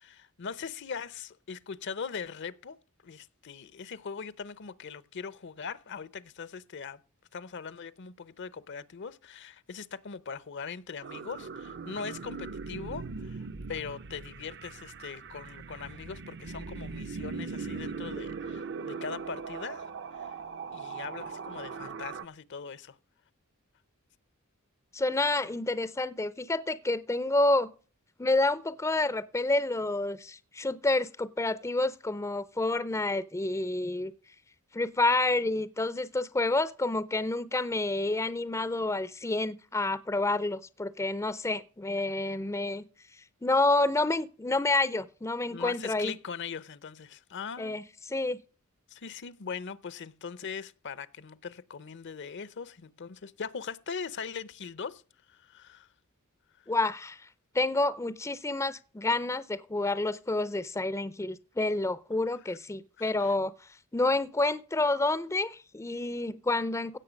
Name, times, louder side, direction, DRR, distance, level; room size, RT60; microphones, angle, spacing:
voice 1, 0.0-2.8 3.0-7.0 7.3-20.3 20.7-23.0 45.5-47.8 48.9-55.0 55.3-55.9 62.5-62.6 63.0-63.3, left 6 dB, 55° left, 0.7 m, -41 dB
sound 1, 11.0-22.3, right 5 dB, 55° right, 0.7 m, -40 dB
voice 2, 24.9-27.7 28.2-34.1 34.7-42.8 43.4-46.1 47.6-48.4 56.7-57.2 57.5-63.5 63.9-67.0, left 2 dB, 15° left, 0.5 m, -29 dB
16.5 x 6.6 x 5.1 m
head